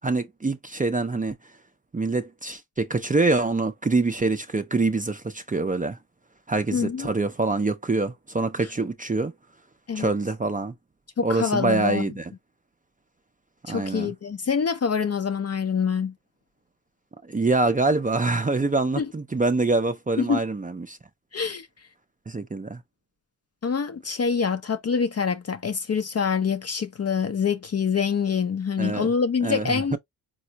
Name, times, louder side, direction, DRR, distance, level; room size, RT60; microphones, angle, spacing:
voice 1, 0.0-1.4 1.9-6.0 6.5-9.3 9.9-10.7 11.2-12.2 13.7-14.1 17.3-21.0 22.3-22.8 28.8-29.1 29.4-30.0, right 3 dB, 20° right, 0.5 m, -25 dB
voice 2, 6.7-7.1 9.9-10.1 11.2-12.1 13.7-16.1 19.0-19.1 20.2-20.4 21.3-21.7 23.6-30.0, left 6 dB, 35° left, 0.5 m, -25 dB
4.1 x 2.2 x 2.8 m
cardioid pair, 55°, 46 cm